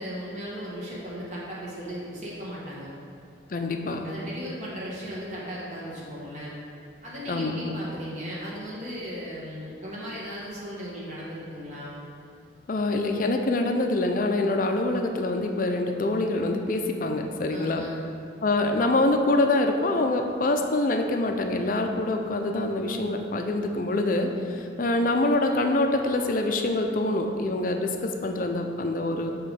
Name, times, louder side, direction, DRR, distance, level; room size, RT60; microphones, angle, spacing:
voice 1, 0.0-2.9 4.0-6.6 7.0-12.0 17.5-18.0, equal, 40° right, -6 dB, 1.1 m, -36 dB
voice 2, 3.5-4.1 7.3-7.8 12.7-17.8 18.4-29.3, left 2 dB, 45° left, 4 dB, 0.4 m, -25 dB
6.5 x 3.1 x 5.1 m, 2.5 s
head